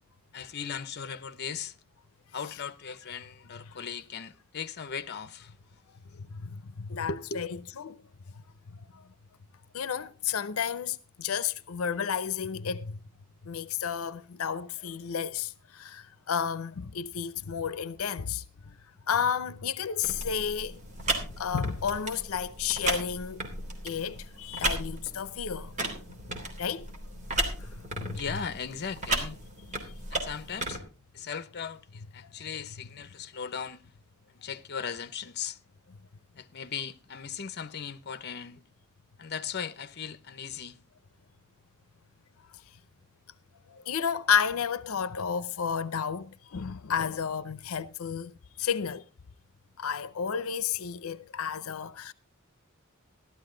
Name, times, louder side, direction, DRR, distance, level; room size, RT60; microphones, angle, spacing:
voice 1, 0.3-1.7 2.3-5.5 6.1-6.2 7.1-7.5 28.1-29.4 30.1-30.8 31.1-33.8 34.3-35.6 36.4-38.6 39.2-40.8, left 6 dB, 50° left, 0.8 m, -38 dB
voice 2, 6.3-7.5 7.8-8.0 8.9-9.0 9.7-13.0 13.5-18.7 19.1-20.8 21.2-23.4 23.8-25.7 26.6-26.9 27.6-28.2 43.7-48.3 48.6-49.0 49.8-52.1, left 7 dB, 90° left, 0.6 m, -32 dB
sound 1, 20.0-30.8, right 2 dB, 35° right, 3.1 m, -35 dB
15.0 x 12.5 x 3.8 m
head